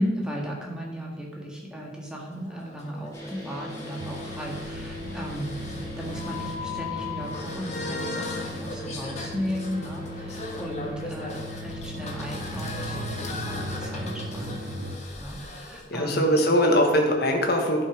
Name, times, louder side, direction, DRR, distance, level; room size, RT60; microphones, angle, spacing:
voice 1, 0.0-16.2, equal, 5° right, -2 dB, 1.9 m, -35 dB
sound 1, 2.1-15.8, left 3 dB, 40° left, 1.5 m, -38 dB
sound 2, 3.1-14.8, equal, 15° left, 2.8 m, -40 dB
sound 3, 4.0-15.0, equal, 65° right, 0.6 m, -39 dB
voice 2, 15.9-17.8, equal, 60° left, 2 dB, 1.4 m, -21 dB
11.5 x 5.6 x 4.8 m, 1.3 s
head